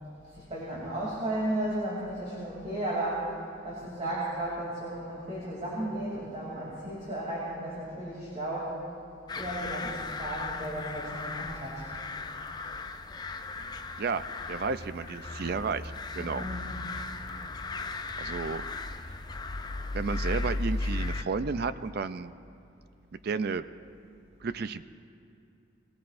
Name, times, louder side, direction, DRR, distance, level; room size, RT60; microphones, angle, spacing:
voice 1, 0.3-3.3 3.6-8.8 9.3-11.9 16.1-16.8, right 1 dB, 35° right, -7 dB, 2.9 m, -34 dB
sound 1, 9.3-21.2, left 2 dB, 20° left, 0.5 m, -36 dB
voice 2, 14.0-16.4 18.2-18.7 19.9-22.3 23.2-23.6 24.4-24.8, right 4 dB, 55° right, 13 dB, 0.4 m, -32 dB
21.5 x 18.5 x 2.6 m, 2.5 s
head